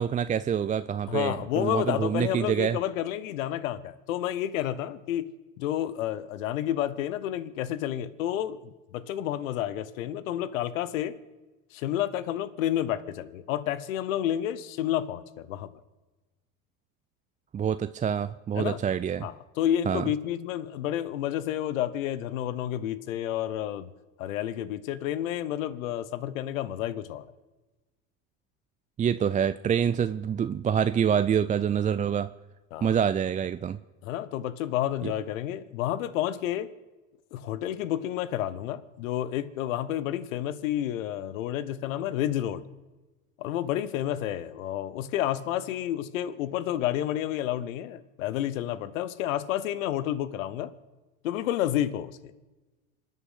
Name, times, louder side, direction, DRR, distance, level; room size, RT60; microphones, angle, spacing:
voice 1, 0.0-2.8 17.5-19.3 19.9-20.0 29.0-32.3 32.8-33.8 35.0-35.1, right 8 dB, 20° right, 13 dB, 0.4 m, -26 dB
voice 2, 1.1-5.3 5.6-11.2 11.7-15.7 18.5-18.8 19.2-23.9 24.2-27.3 32.7-33.0 34.0-36.7 37.3-42.7 43.4-50.7 51.2-52.3, left 11 dB, 80° left, 17 dB, 1.1 m, -30 dB
26.0 x 9.5 x 5.7 m, 1.2 s
hypercardioid pair, 85°, 40 cm